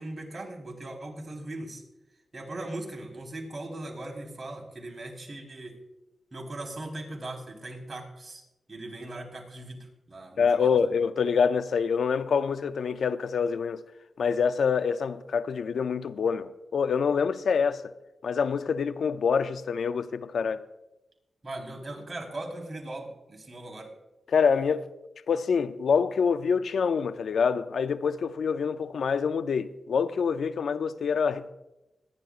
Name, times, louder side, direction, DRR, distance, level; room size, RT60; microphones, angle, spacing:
voice 1, 0.0-1.8 2.3-5.8 6.3-8.4 8.7-10.7 21.4-23.9, right 2 dB, 35° right, 4.1 m, -39 dB
voice 2, 10.4-13.8 14.2-17.8 18.2-20.7 24.3-24.9 25.3-31.5, left 6 dB, 80° left, 0.5 m, -26 dB
25.0 x 10.5 x 2.5 m
cardioid pair, 60°, 0 cm